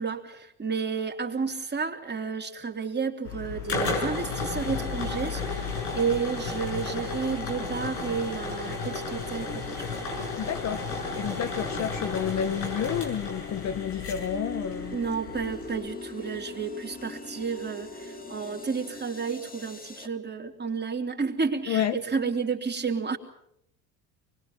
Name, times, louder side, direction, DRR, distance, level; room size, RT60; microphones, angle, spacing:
voice 1, 0.0-9.8 14.9-23.2, right 5 dB, 20° right, 3.4 m, -31 dB
sound 1, 3.2-15.7, left 4 dB, 90° left, 6.8 m, -33 dB
sound 2, 5.1-20.1, left 3 dB, 20° left, 2.2 m, -44 dB
voice 2, 10.4-15.0 21.7-22.0, left 9 dB, 35° left, 0.9 m, -30 dB
24.5 x 21.5 x 7.3 m
hypercardioid pair, 70°, 46 cm